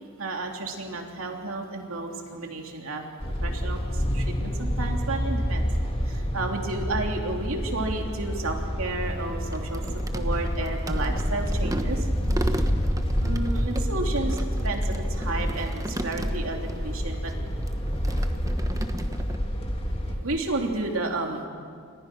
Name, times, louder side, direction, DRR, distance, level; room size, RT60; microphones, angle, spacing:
voice 1, 0.2-3.1 3.4-5.7 6.0-9.8 10.1-12.1 13.2-17.3 20.1-21.4, right 2 dB, 70° right, 2 dB, 3.2 m, -32 dB
sound 1, 3.2-20.2, equal, 25° left, 2.8 m, -28 dB
sound 2, 9.0-16.8 17.1-19.4, right 1 dB, 15° right, 1.2 m, -37 dB
29.5 x 25.0 x 6.1 m, 2.2 s
head